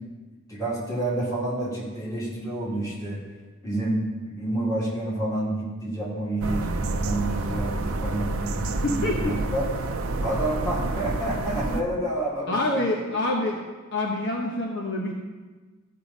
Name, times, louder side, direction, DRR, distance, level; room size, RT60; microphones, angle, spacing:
voice 1, 0.5-3.2 3.6-4.0 4.4-9.7 10.2-12.8, right 1 dB, 15° left, -6 dB, 2.5 m, -29 dB
sound 1, 6.4-11.8, right 2 dB, 75° right, 0.6 m, -29 dB
voice 2, 8.8-9.3 12.5-13.6 13.9-15.1, left 2 dB, 60° left, 0 dB, 1.0 m, -26 dB
13.5 x 5.5 x 4.1 m, 1.3 s
head